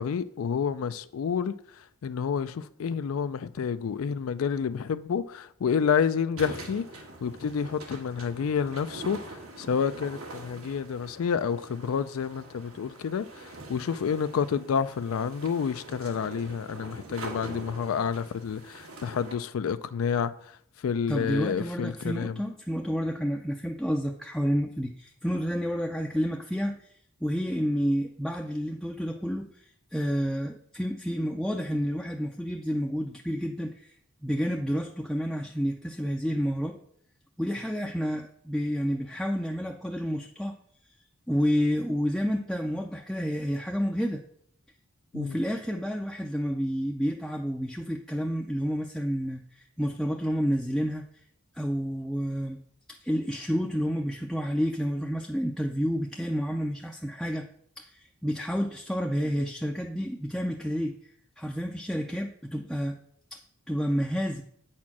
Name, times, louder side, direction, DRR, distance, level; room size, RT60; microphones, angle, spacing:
voice 1, 0.0-6.8 7.2-22.4 45.1-45.4, left 6 dB, 80° left, 0.4 m, -29 dB
sound 1, 6.4-19.4, right 2 dB, 85° right, 1.8 m, -44 dB
voice 2, 21.1-26.9 27.2-33.9 34.2-36.8 37.4-40.6 41.3-44.2 45.1-51.1 51.5-52.6 52.9-57.5 57.8-63.0 63.3-63.4 63.7-64.4, equal, ahead, 0.4 m, -30 dB
8.4 x 4.4 x 5.9 m
head